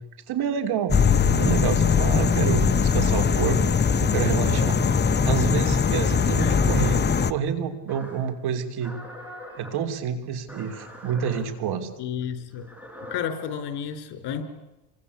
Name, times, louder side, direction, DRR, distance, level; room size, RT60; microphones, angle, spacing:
voice 1, 0.3-1.0 1.2-4.8 5.2-7.0 7.3-8.9 9.3-11.9, right 7 dB, 65° right, 8 dB, 3.5 m, -28 dB
sound 1, 0.9-7.3, left 6 dB, 25° left, 1.0 m, -21 dB
voice 2, 2.6-3.0 6.3-6.7 12.0-12.7 13.1-14.4, left 8 dB, 70° left, 9 dB, 4.6 m, -32 dB
sound 2, 4.0-5.7 6.4-7.3 7.9-8.3 8.8-9.7 10.5-11.4 12.5-13.3, equal, 5° right, 7.1 m, -42 dB
28.0 x 23.5 x 8.5 m, 0.99 s
cardioid pair, 120°, 41 cm